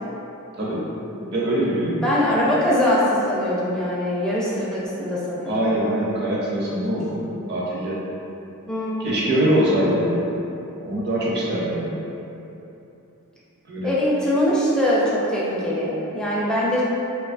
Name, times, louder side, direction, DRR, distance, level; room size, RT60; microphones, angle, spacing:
voice 1, 1.2-2.1 5.5-8.0 9.0-10.3 10.8-12.0 13.7-13.9, right 1 dB, 50° right, -6 dB, 0.5 m, -23 dB
voice 2, 2.0-5.7 6.7-6.8 8.7-9.6 13.8-16.8, left 1 dB, 5° left, -7 dB, 0.4 m, -22 dB
2.7 x 2.3 x 2.5 m, 2.9 s
head